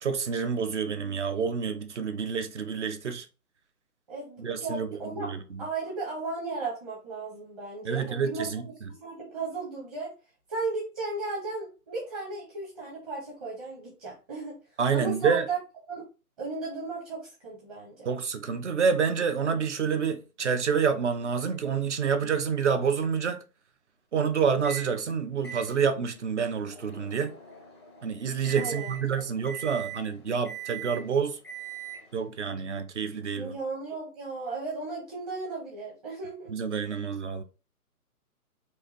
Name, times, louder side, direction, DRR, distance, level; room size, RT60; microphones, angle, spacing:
voice 1, 0.0-3.3 4.4-5.7 7.8-8.6 14.8-15.5 18.1-23.4 24.1-27.3 28.0-31.4 32.1-33.5 36.5-37.4, right 6 dB, 50° right, 0.7 m, -28 dB
voice 2, 4.1-5.3 5.6-8.5 9.0-10.1 10.5-14.6 14.9-15.6 15.9-16.0 16.4-18.1 28.5-29.0 29.4-29.5 33.3-36.5, right 3 dB, 25° right, 1.1 m, -35 dB
Microwave oven, 24.6-24.9 25.4-32.3, right 9 dB, 20° left, 0.4 m, -42 dB
4.6 x 2.7 x 3.0 m
figure-of-eight pair, 145°, 46 cm